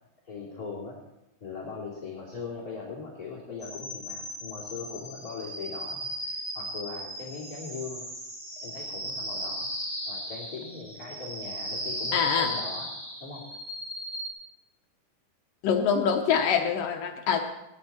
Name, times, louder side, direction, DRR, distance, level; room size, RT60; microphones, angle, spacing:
voice 1, 0.3-1.0 1.4-8.0 8.6-9.7 10.1-12.9 13.2-13.4, left 4 dB, 25° left, -6 dB, 2.9 m, -40 dB
sound 1, 3.6-14.3, equal, ahead, 6.8 m, -36 dB
voice 2, 12.1-12.5 15.6-17.4, left 7 dB, 80° left, 3 dB, 2.6 m, -24 dB
19.0 x 12.5 x 4.3 m, 0.93 s
omnidirectional pair, 3.9 m